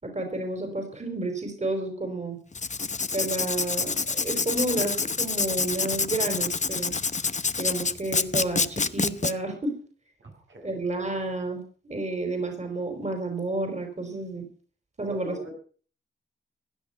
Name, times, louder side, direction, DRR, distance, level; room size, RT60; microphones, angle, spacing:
voice 1, 0.0-2.4 3.1-7.0 7.6-9.7 10.6-14.4 15.0-15.5, right 2 dB, 35° right, 4 dB, 4.8 m, -31 dB
Writing, 2.5-9.3, left 4 dB, 35° left, 0.8 m, -27 dB
voice 2, 10.2-10.7 15.0-15.5, right 1 dB, 75° right, 1 dB, 6.3 m, -42 dB
16.5 x 11.0 x 5.9 m, 0.43 s
cardioid pair, 60°, 20 cm